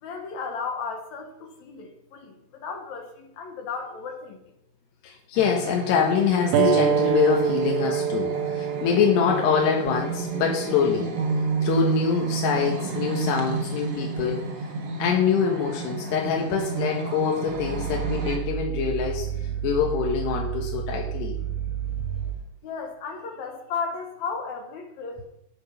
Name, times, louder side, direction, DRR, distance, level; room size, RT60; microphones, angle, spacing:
voice 1, 0.0-4.4 22.6-25.2, left 5 dB, 55° left, 4 dB, 2.2 m, -34 dB
voice 2, 5.0-11.1 11.6-14.5 15.0-21.4, left 7 dB, 85° left, 0 dB, 3.5 m, -25 dB
sound 1, 5.4-18.4, right 5 dB, 45° right, 1.9 m, -31 dB
sound 2, 6.5-11.7, right 8 dB, 75° right, 2.3 m, -27 dB
Growling, 17.5-22.4, right 10 dB, 25° left, 3.5 m, -31 dB
17.5 x 6.2 x 5.3 m, 0.83 s
omnidirectional pair, 4.7 m